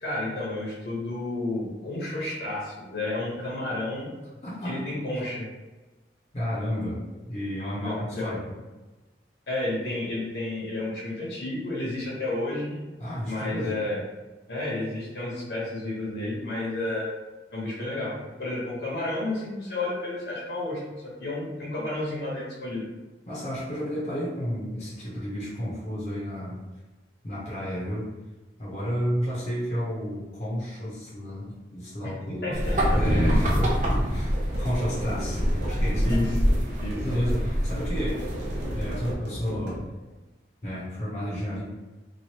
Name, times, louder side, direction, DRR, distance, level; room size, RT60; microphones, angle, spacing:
voice 1, 0.0-4.1 4.6-5.5 7.8-8.3 9.5-12.8 13.3-14.0 14.5-17.1 17.5-22.8 32.4-33.6 36.0-36.3 36.8-37.0, left 2 dB, 70° left, -5 dB, 1.1 m, -31 dB
voice 2, 4.4-4.8 6.3-8.5 13.0-13.8 23.3-26.6 27.2-28.1 28.6-32.5 32.9-36.2 37.0-38.3 38.7-39.8 40.6-41.6, equal, 40° left, -8 dB, 0.8 m, -31 dB
sound 1, 32.5-39.1, equal, 45° right, 0.6 m, -26 dB
sound 2, 33.0-39.9, right 1 dB, 75° right, 0.8 m, -37 dB
3.1 x 2.4 x 2.9 m, 1.2 s
head